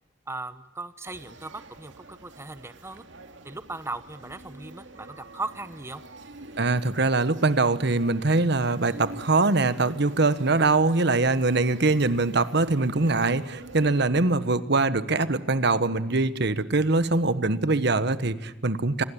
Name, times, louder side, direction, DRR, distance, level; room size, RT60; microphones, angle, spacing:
voice 1, 0.3-3.0 3.4-6.0, right 2 dB, 15° right, 12 dB, 0.9 m, -37 dB
sound 1, 1.0-14.1, right 2 dB, 85° right, 2.4 m, -46 dB
voice 2, 6.6-19.0, right 3 dB, 60° right, 13 dB, 1.3 m, -23 dB
26.5 x 19.5 x 10.0 m, 1.1 s
head